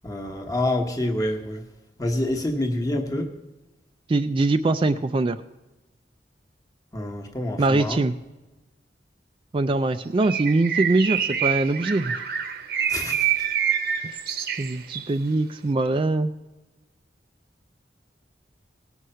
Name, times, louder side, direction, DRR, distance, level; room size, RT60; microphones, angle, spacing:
voice 1, 0.0-1.7 2.0-3.3 6.9-8.0 12.9-13.5, left 1 dB, 20° left, 3 dB, 1.1 m, -27 dB
voice 2, 4.1-5.4 7.6-8.1 9.5-12.2 14.0-14.2 14.6-16.3, right 2 dB, 30° right, 9 dB, 0.3 m, -22 dB
Bird, 10.2-15.1, right 9 dB, 60° right, 0.9 m, -26 dB
18.0 x 6.4 x 5.6 m, 1.1 s
head